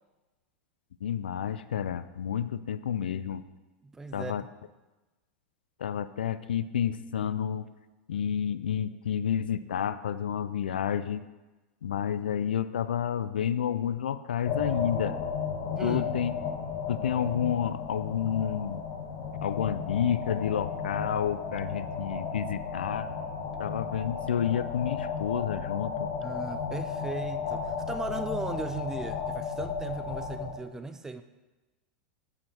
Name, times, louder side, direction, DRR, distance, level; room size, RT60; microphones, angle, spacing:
voice 1, 1.0-3.4 4.1-4.4 5.8-7.7 8.1-11.2 11.8-15.2 15.8-16.3 16.9-18.8 19.4-23.1 23.6-26.1, left 9 dB, 90° left, 14 dB, 0.4 m, -30 dB
voice 2, 3.8-4.3 15.8-16.1 26.2-31.2, right 3 dB, 10° right, 9 dB, 0.4 m, -37 dB
sound 1, 14.5-30.5, left 6 dB, 55° left, 1.6 m, -34 dB
8.9 x 6.5 x 4.3 m, 1.1 s
hypercardioid pair, 110°, 5 cm